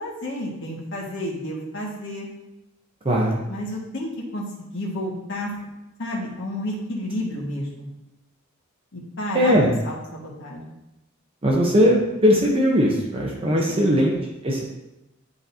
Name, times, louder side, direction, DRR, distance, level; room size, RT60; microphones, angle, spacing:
voice 1, 0.0-2.3 3.5-5.5 6.0-7.9 8.9-9.6 9.8-10.7 13.7-13.8, left 1 dB, 60° left, -3 dB, 1.9 m, -31 dB
voice 2, 3.0-3.4 9.3-9.7 11.4-14.2 14.4-14.6, equal, 25° right, -2 dB, 0.9 m, -19 dB
11.0 x 3.8 x 2.8 m, 0.95 s
head